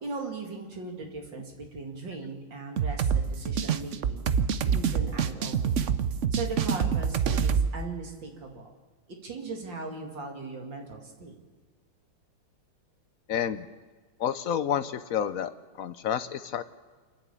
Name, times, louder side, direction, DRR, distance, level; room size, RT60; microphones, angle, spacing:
voice 1, 0.0-4.2 4.6-5.8 6.3-8.7 9.2-11.4, right 3 dB, 60° right, 2 dB, 3.0 m, -38 dB
sound 1, 2.8-7.7, right 7 dB, 75° right, 0.6 m, -26 dB
voice 2, 13.3-13.7 14.2-16.6, left 9 dB, 70° left, 12 dB, 0.8 m, -30 dB
28.5 x 10.5 x 8.5 m, 1.4 s
omnidirectional pair, 2.3 m